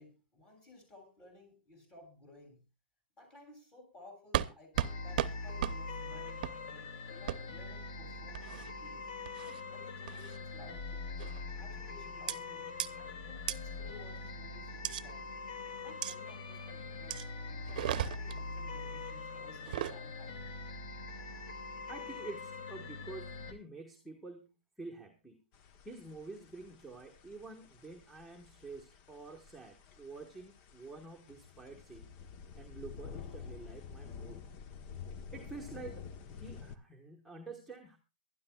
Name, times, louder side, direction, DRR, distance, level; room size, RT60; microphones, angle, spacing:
voice 1, 0.0-2.6 3.2-9.1 9.7-11.1 11.6-15.3 15.8-20.5, left 2 dB, 20° left, 3 dB, 7.1 m, -57 dB
sound 1, 4.3-4.5 4.8-4.9 5.2-5.3 5.6-5.8 6.4-6.6 7.3-7.4 8.3-8.7 9.3-9.6 10.1-10.4 11.2-11.5 12.3-12.4 12.8-12.9 13.5-13.6 14.8-15.0 16.0-16.2 17.1-17.3 17.7-18.4 19.6-20.0, right 12 dB, 60° right, 0.8 m, -34 dB
sound 2, 4.7-23.5, left 3 dB, 60° left, 2.5 m, -43 dB
voice 2, 21.9-25.4 25.8-32.1 32.6-34.4 35.3-38.0, right 3 dB, ahead, -2 dB, 1.5 m, -48 dB
sound 3, 25.5-36.8, left 6 dB, 40° left, 1.1 m, -50 dB
23.0 x 12.5 x 2.4 m, 0.29 s
hypercardioid pair, 135°, 5 cm